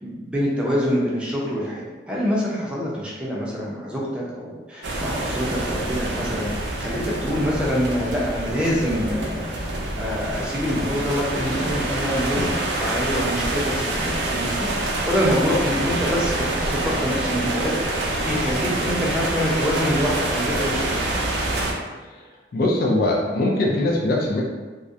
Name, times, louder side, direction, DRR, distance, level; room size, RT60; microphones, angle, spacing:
voice 1, 0.0-6.5 6.8-12.4 12.8-14.7 15.1-20.9, equal, 5° right, -6 dB, 0.5 m, -25 dB
sound 1, 4.8-21.7, right 2 dB, 85° right, 0.4 m, -26 dB
voice 2, 22.5-24.4, left 2 dB, 55° left, -2 dB, 0.4 m, -22 dB
2.3 x 2.1 x 2.6 m, 1.3 s
head